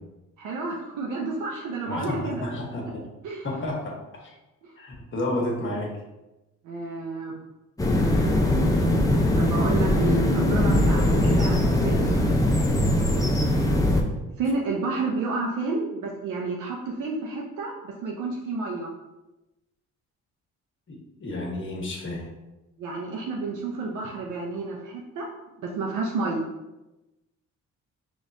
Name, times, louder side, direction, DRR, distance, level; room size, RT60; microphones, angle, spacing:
voice 1, 0.4-2.5 3.2-3.5 4.6-4.7 6.6-7.3 9.4-12.1 14.4-18.9 22.8-25.3 25.6-26.4, right 3 dB, 85° right, -1 dB, 0.7 m, -30 dB
voice 2, 1.9-3.0 3.4-4.3 4.8-5.9 10.3-11.4 20.9-22.3, left 1 dB, 40° left, 0 dB, 1.2 m, -31 dB
sound 1, 7.8-14.0, left 1 dB, 10° left, 0.6 m, -21 dB
5.1 x 3.2 x 2.7 m, 1.0 s
cardioid pair, 90°, 30 cm